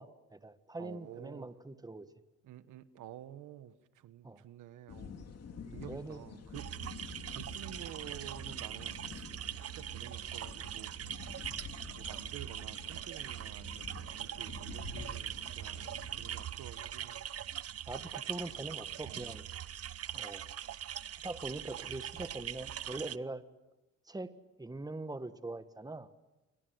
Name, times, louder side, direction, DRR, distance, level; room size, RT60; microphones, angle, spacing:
voice 1, 0.0-2.1 4.2-4.4 5.9-6.2 17.9-19.4 20.1-20.4 21.2-23.4 24.1-24.3 24.6-26.1, right 2 dB, 15° right, 11 dB, 1.7 m, -42 dB
voice 2, 0.8-1.5 2.4-5.2 5.7-6.7 7.3-9.3 9.7-10.9 11.7-17.3 19.0-19.4, right 12 dB, 85° right, 13 dB, 1.4 m, -50 dB
sound 1, 4.9-16.5, left 6 dB, 55° left, 2.7 m, -49 dB
sound 2, 6.5-23.2, right 10 dB, 50° right, 0.9 m, -42 dB
29.0 x 24.5 x 8.0 m, 1.0 s
cardioid pair, 90°, 30 cm